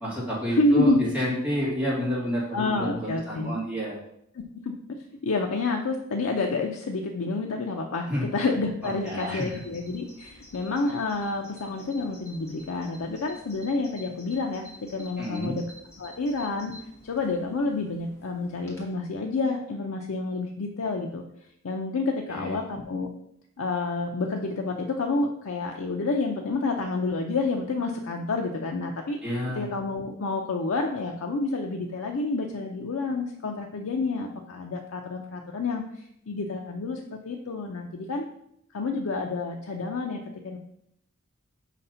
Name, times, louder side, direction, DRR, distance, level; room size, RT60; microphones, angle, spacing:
voice 1, 0.0-4.0 8.1-8.3 8.8-9.6 15.2-15.6 22.3-22.6 29.2-29.7, equal, 5° right, -7 dB, 2.2 m, -30 dB
voice 2, 0.5-1.0 1.6-1.7 2.5-3.5 4.6-4.7 5.2-14.6 14.9-15.6 16.0-16.7 17.0-21.2 21.6-23.1 23.6-29.2 29.6-35.8 36.3-38.3 38.7-40.6, left 3 dB, 75° left, 2 dB, 0.5 m, -28 dB
Bird vocalization bird call bird song, 8.8-18.9, equal, 15° left, 1.3 m, -51 dB
4.9 x 4.1 x 5.5 m, 0.75 s
head